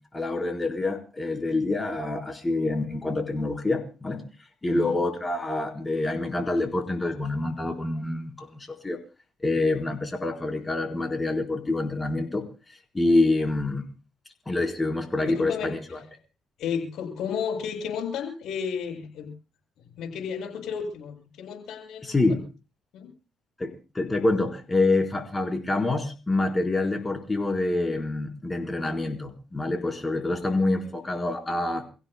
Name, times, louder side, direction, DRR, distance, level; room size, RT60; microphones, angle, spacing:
voice 1, 0.1-4.2 4.6-9.0 9.4-12.4 12.9-13.9 14.5-15.8 22.0-22.4 23.6-31.8, left 2 dB, 20° left, 3 dB, 4.4 m, -26 dB
voice 2, 4.7-5.0 15.3-15.8 16.6-19.3 19.8-22.2 22.9-23.1 30.3-30.9, left 7 dB, 80° left, 2 dB, 7.4 m, -33 dB
29.0 x 16.0 x 2.3 m, 0.33 s
cardioid pair, 75°, 0 cm